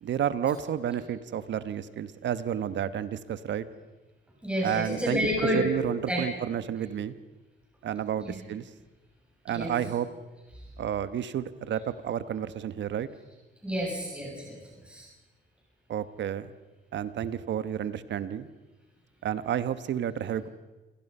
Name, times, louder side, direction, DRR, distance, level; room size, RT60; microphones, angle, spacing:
voice 1, 0.0-3.7 4.6-5.2 5.5-7.2 7.8-8.6 9.4-10.1 10.8-13.1 15.9-16.5 16.9-18.5 19.2-20.5, right 9 dB, 65° right, 13 dB, 1.2 m, -31 dB
voice 2, 4.4-5.7 6.1-6.3 8.2-8.4 9.5-9.7 10.6-10.7 13.6-14.6 14.8-15.1, equal, 5° right, -3 dB, 7.0 m, -30 dB
28.0 x 17.5 x 5.5 m, 1.2 s
cardioid pair, 90°, 20 cm